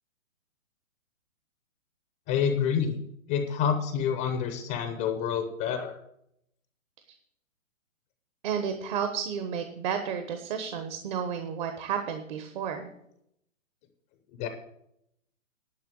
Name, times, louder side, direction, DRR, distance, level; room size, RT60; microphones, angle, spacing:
voice 1, 2.3-3.0 3.3-5.9 14.4-14.5, left 7 dB, 15° left, 7 dB, 0.7 m, -28 dB
voice 2, 8.4-12.9, right 7 dB, 35° right, 7 dB, 1.1 m, -32 dB
11.0 x 5.7 x 8.3 m, 0.76 s
hypercardioid pair, 145°, 40 cm